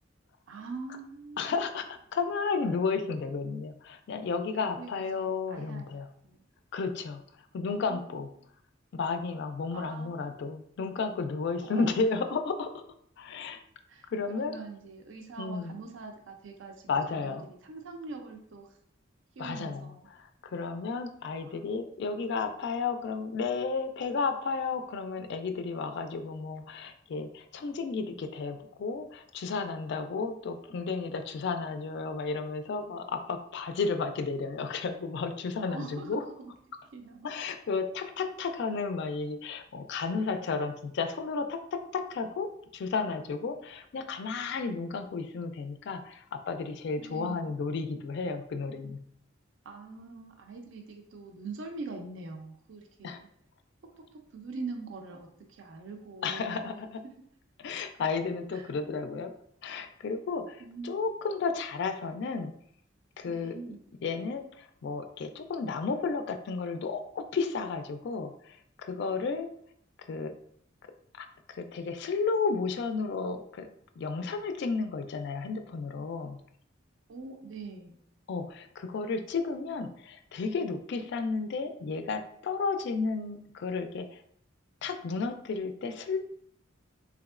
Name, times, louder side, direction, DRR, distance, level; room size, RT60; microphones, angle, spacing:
voice 1, 0.5-1.5 4.8-6.4 7.7-8.0 9.7-10.3 11.6-12.1 13.9-16.9 17.1-18.7 19.4-20.1 21.4-21.6 35.7-36.5 36.9-37.3 47.0-47.6 49.6-53.3 54.0-54.1 54.3-56.6 58.5-58.7 60.6-61.0 63.2-63.8 77.1-78.0, right 3 dB, 70° right, 3 dB, 0.4 m, -43 dB
voice 2, 1.4-1.9 2.1-6.1 6.7-7.2 7.5-8.3 8.9-12.8 13.2-13.6 14.1-14.6 15.4-15.8 16.9-17.4 19.4-19.9 20.4-36.2 37.2-49.0 53.0-53.2 56.2-57.0 57.6-59.3 59.6-62.5 63.2-63.5 64.0-69.5 70.1-70.3 71.1-73.7 74.0-76.4 78.3-84.2 84.8-86.2, left 4 dB, 60° left, 8 dB, 0.3 m, -33 dB
3.4 x 3.0 x 2.4 m, 0.67 s
head